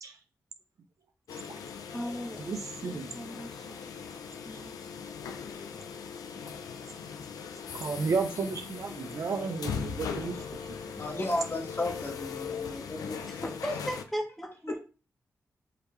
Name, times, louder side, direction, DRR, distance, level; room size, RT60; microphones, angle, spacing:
sound 1, 1.3-14.0, left 6 dB, 85° left, 0.5 m, -39 dB
voice 1, 1.9-2.4 2.8-4.2 4.5-4.7 13.3-13.4 13.6-14.7, equal, ahead, -1 dB, 1.2 m, -38 dB
voice 2, 2.5-3.1 7.7-10.4, right 4 dB, 65° right, 6 dB, 0.5 m, -32 dB
voice 3, 11.0-13.6 14.7-14.8, left 2 dB, 40° left, 2 dB, 1.5 m, -34 dB
4.7 x 3.2 x 3.2 m, 0.33 s
supercardioid pair, 45°, 6 cm